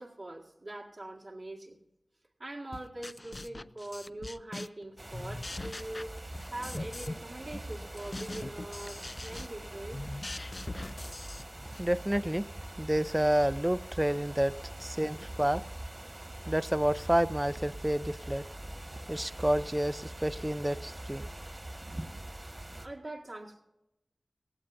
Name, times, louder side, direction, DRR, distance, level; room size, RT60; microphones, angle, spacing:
voice 1, 0.0-1.8 2.4-6.1 6.5-10.0 22.7-23.6, right 1 dB, 65° right, 1.8 m, -42 dB
sound 1, 2.7-4.8 5.1-7.2 7.5-11.9, left 2 dB, 45° left, 0.4 m, -42 dB
sound 2, 5.0-22.9, right 1 dB, 40° right, 1.6 m, -43 dB
voice 2, 11.8-12.5 12.8-14.5 14.8-15.6 16.5-18.4 19.1-21.2, right 1 dB, 15° right, 0.4 m, -29 dB
17.5 x 16.5 x 2.6 m
cardioid pair, 40°, 0 cm